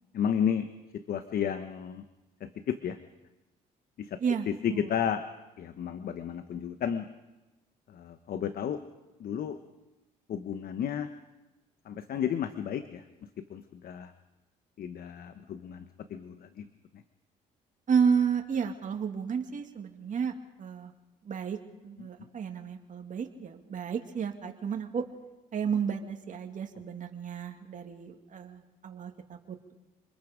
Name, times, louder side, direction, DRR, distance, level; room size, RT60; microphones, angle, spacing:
voice 1, 0.1-0.7 0.9-2.0 2.4-3.0 4.0-4.2 4.5-5.3 5.6-7.1 7.9-8.8 9.2-9.6 10.3-11.1 11.8-13.0 13.5-14.1 14.8-15.8 16.1-16.7 22.0-22.1, left 8 dB, 60° left, 10 dB, 1.1 m, -32 dB
voice 2, 4.2-4.9 17.9-20.9 21.2-21.6 21.8-25.1 25.5-29.7, right 6 dB, 50° right, 3 dB, 2.3 m, -32 dB
26.5 x 21.5 x 5.1 m, 1.1 s
supercardioid pair, 75°, 17 cm